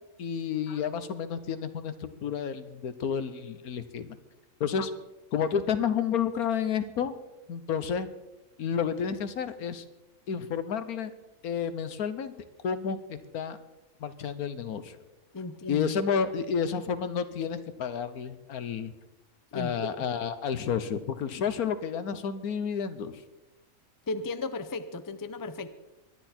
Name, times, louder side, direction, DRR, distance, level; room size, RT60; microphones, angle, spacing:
voice 1, 0.2-4.2 4.6-4.9 5.3-7.1 7.5-8.1 8.6-9.8 10.3-11.1 11.4-12.3 12.6-13.6 14.0-15.0 15.7-18.9 19.5-23.2, left 7 dB, 75° left, 12 dB, 1.4 m, -30 dB
voice 2, 15.3-15.9 19.5-19.9 24.1-25.7, left 3 dB, 30° left, 11 dB, 0.4 m, -35 dB
23.0 x 10.5 x 4.4 m, 1.0 s
omnidirectional pair, 1.6 m